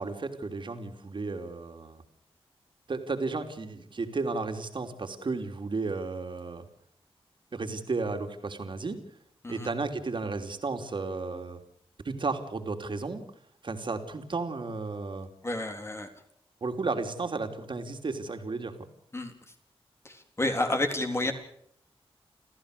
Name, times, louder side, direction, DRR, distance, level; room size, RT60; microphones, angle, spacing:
voice 1, 0.0-2.0 2.9-6.7 7.5-9.0 9.5-11.6 12.0-13.2 13.6-15.3 16.6-18.7, right 3 dB, 50° right, 5 dB, 3.3 m, -33 dB
voice 2, 15.4-16.1 19.1-19.3 20.0-21.3, left 2 dB, 25° left, 5 dB, 3.8 m, -30 dB
29.0 x 14.5 x 6.8 m, 0.69 s
wide cardioid pair, 105°, 10 cm